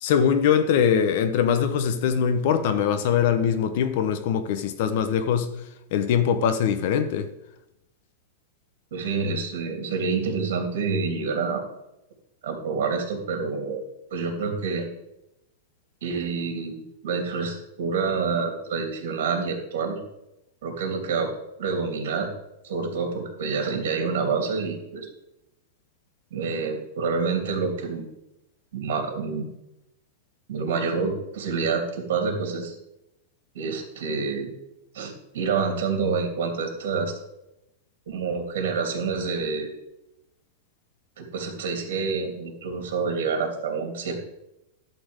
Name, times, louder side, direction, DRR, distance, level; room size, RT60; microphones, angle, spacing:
voice 1, 0.0-5.6 5.9-7.3, left 8 dB, 50° left, 0.9 m, -22 dB
voice 2, 8.9-11.6 12.4-13.8 14.1-14.9 16.0-20.0 20.6-21.3 21.6-22.3 22.6-25.1 26.3-28.1 28.7-29.5 30.5-32.7 33.5-34.5 34.9-37.1 38.1-39.8 41.2-44.1, right 5 dB, 65° right, 2.9 m, -27 dB
12.0 x 4.3 x 8.1 m
supercardioid pair, 170°, 0 cm